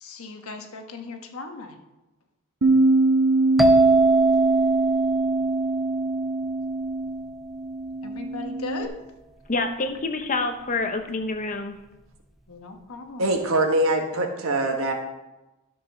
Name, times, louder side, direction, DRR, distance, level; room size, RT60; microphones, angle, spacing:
voice 1, 0.0-1.8 8.0-9.0 12.5-13.3, left 3 dB, 75° left, 5 dB, 1.3 m, -37 dB
Bass guitar, 2.6-8.9, right 2 dB, 85° right, 1.3 m, -23 dB
sound 1, 3.6-7.2, right 3 dB, ahead, 0.5 m, -22 dB
voice 2, 9.5-11.8, left 3 dB, 35° left, 7 dB, 0.9 m, -27 dB
voice 3, 13.2-14.9, right 1 dB, 70° right, 3 dB, 1.6 m, -23 dB
12.5 x 5.3 x 6.3 m, 1.0 s
head